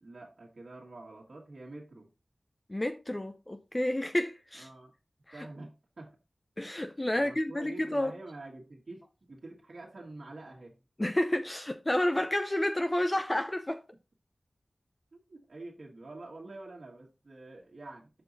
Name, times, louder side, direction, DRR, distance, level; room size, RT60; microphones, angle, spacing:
voice 1, 0.0-2.1 4.6-4.9 5.3-5.7 6.0-6.1 7.0-10.8 15.1-18.1, right 2 dB, 70° right, 2.0 m, -47 dB
voice 2, 2.7-4.7 5.3-5.4 6.6-8.1 11.0-13.8, left 1 dB, 25° left, 0.7 m, -30 dB
6.8 x 5.8 x 4.1 m
wide cardioid pair, 50°, 0 cm